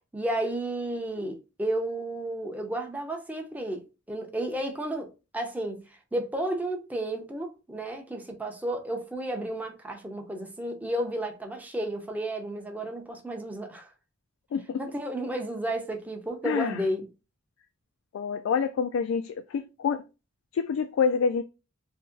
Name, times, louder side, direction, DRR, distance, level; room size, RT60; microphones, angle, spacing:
voice 1, 0.1-5.1 5.3-13.9 14.8-17.1, right 1 dB, 10° right, 0.5 m, -32 dB
voice 2, 16.4-16.8 18.1-20.0 20.5-21.4, left 6 dB, 90° left, 0.3 m, -27 dB
2.9 x 2.7 x 3.6 m
head